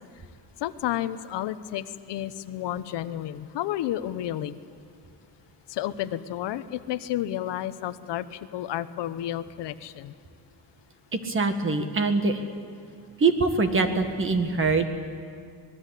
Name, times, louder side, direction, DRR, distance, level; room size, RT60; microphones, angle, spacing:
voice 1, 0.6-4.6 5.7-10.1, left 12 dB, 75° left, 12 dB, 1.0 m, -31 dB
voice 2, 11.1-12.4 13.2-14.9, right 3 dB, 30° right, 7 dB, 1.9 m, -23 dB
26.0 x 20.0 x 8.4 m, 2.4 s
cardioid pair, 160°, 42 cm